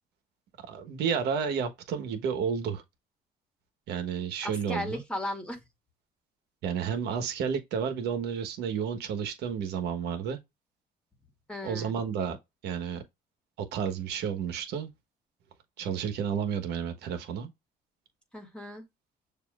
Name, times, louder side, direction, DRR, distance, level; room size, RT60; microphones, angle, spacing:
voice 1, 0.7-2.8 3.9-5.0 6.6-10.4 11.6-12.4 12.6-13.0 13.6-14.9 15.8-17.5, right 7 dB, 80° right, 1.2 m, -31 dB
voice 2, 4.4-5.6 11.5-11.9 18.3-18.8, left 1 dB, 5° left, 1.7 m, -36 dB
6.8 x 2.8 x 2.4 m
cardioid pair, 110°, 17 cm